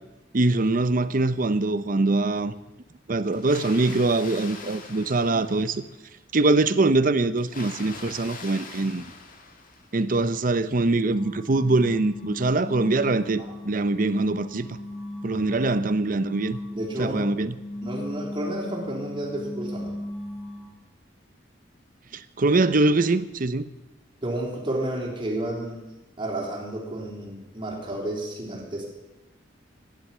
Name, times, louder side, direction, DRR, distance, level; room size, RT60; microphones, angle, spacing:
voice 1, 0.3-2.5 3.1-5.8 6.3-9.0 9.9-14.8 15.2-16.6 17.0-17.5 22.1-23.7, right 2 dB, 50° right, 0.7 m, -23 dB
Water, 3.3-6.1 7.4-10.2, left 3 dB, 50° left, 2.0 m, -43 dB
sound 1, 11.0-20.7, left 1 dB, 5° left, 5.1 m, -37 dB
voice 2, 16.7-17.2 17.8-19.9 24.2-25.8 26.2-28.9, right 1 dB, 30° right, 3.6 m, -31 dB
14.5 x 11.5 x 7.3 m
head